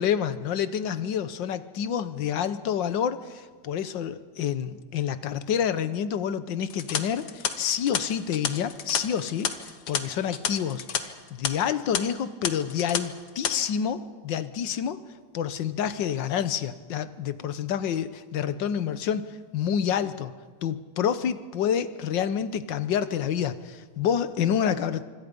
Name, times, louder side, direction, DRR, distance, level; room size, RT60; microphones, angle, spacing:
voice 1, 0.0-9.5 9.9-15.0 15.3-20.3 20.6-25.0, left 8 dB, 90° left, 13 dB, 1.7 m, -28 dB
sound 1, 6.7-11.0 11.3-11.5 11.9-12.0 12.4-13.0 13.3-13.5, left 8 dB, 65° left, 1.8 m, -30 dB
25.5 x 25.5 x 5.3 m, 1.5 s
omnidirectional pair, 1.9 m